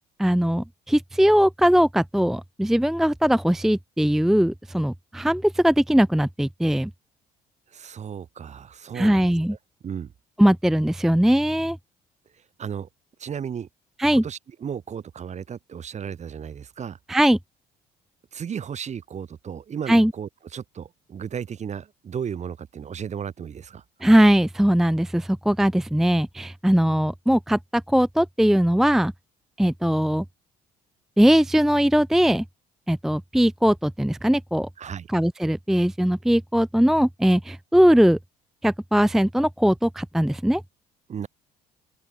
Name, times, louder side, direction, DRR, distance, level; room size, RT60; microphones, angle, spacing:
voice 1, 0.2-6.9 8.9-9.6 10.4-11.8 14.0-14.2 17.1-17.4 19.9-20.1 24.0-29.1 29.6-30.2 31.2-32.4 32.9-34.7 35.1-38.2 38.6-40.6, equal, ahead, 0.4 m, -20 dB
voice 2, 7.7-9.3 9.8-10.1 12.6-12.9 13.2-13.7 14.1-17.0 18.3-23.8 34.8-35.1 41.1-41.3, right 7 dB, 45° right, 5.4 m, -34 dB
open air
cardioid pair, 110°, 17 cm